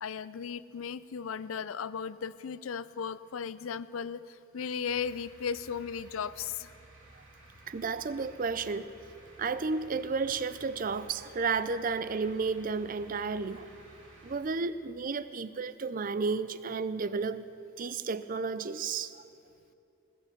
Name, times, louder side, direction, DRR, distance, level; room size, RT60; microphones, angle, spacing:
voice 1, 0.0-6.7, left 6 dB, 85° left, 16 dB, 0.5 m, -36 dB
sound 1, 4.9-14.4, right 2 dB, 70° right, 3.0 m, -55 dB
voice 2, 7.7-8.9 9.4-13.7 14.2-17.4 17.8-19.2, right 4 dB, 40° right, 14 dB, 0.4 m, -32 dB
19.0 x 7.4 x 7.8 m, 2.8 s
head